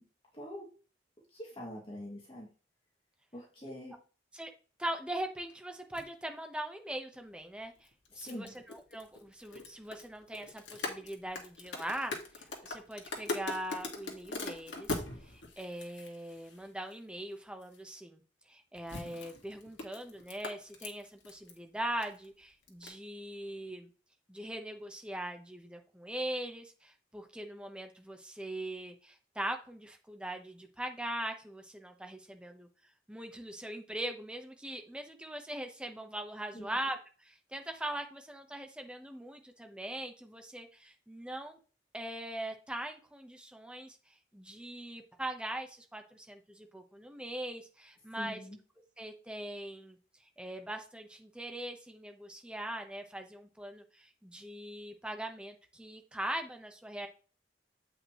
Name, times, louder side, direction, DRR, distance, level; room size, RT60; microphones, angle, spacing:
voice 1, 0.3-0.7 1.3-2.5 3.3-4.0 8.1-8.5 36.5-36.7 48.2-48.6, equal, 30° left, -3 dB, 2.1 m, -44 dB
voice 2, 4.8-7.7 8.1-18.2 18.5-23.9 24.3-32.7 33.1-41.6 41.9-44.0 44.3-48.4 49.0-50.0 50.4-57.1, right 1 dB, 5° right, 5 dB, 0.9 m, -41 dB
sound 1, 6.0-6.1 7.8-16.9 17.6-17.8 18.8-21.6 21.8-22.3 22.7-22.9, left 3 dB, 90° left, 1.7 m, -41 dB
8.2 x 5.3 x 3.0 m, 0.36 s
head